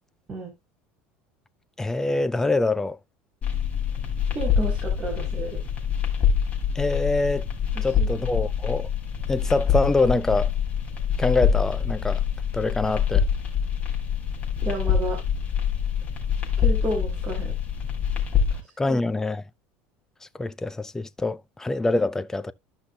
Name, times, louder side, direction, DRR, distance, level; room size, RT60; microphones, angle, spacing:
voice 1, 1.8-3.0 6.8-7.4 7.8-8.9 9.3-10.5 11.2-12.2 12.5-13.2 18.8-19.4 20.4-22.5, left 2 dB, 10° left, 0.5 m, -25 dB
sound 1, 3.4-18.6, left 7 dB, 25° left, 3.7 m, -25 dB
voice 2, 4.3-5.6 7.7-8.1 14.6-15.2 16.6-17.5 18.8-19.0, right 2 dB, 25° right, 3.3 m, -31 dB
13.5 x 5.8 x 2.2 m
cardioid pair, 140°, 5 cm